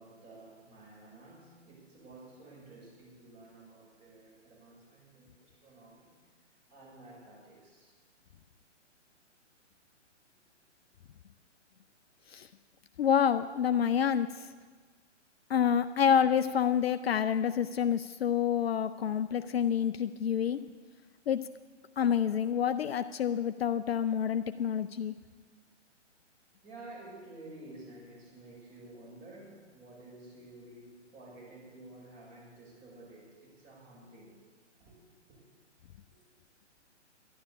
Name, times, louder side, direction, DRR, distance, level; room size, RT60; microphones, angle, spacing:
voice 1, 0.0-6.2 6.7-7.9 26.6-34.4 34.8-35.0 35.3-35.4 36.1-36.2, right 2 dB, 20° right, -4 dB, 5.5 m, -52 dB
voice 2, 13.0-14.5 15.5-20.6 21.3-21.4 22.0-25.2, left 8 dB, 55° left, 10 dB, 0.6 m, -28 dB
12.0 x 11.5 x 7.1 m, 1.4 s
figure-of-eight pair, 130°, 36 cm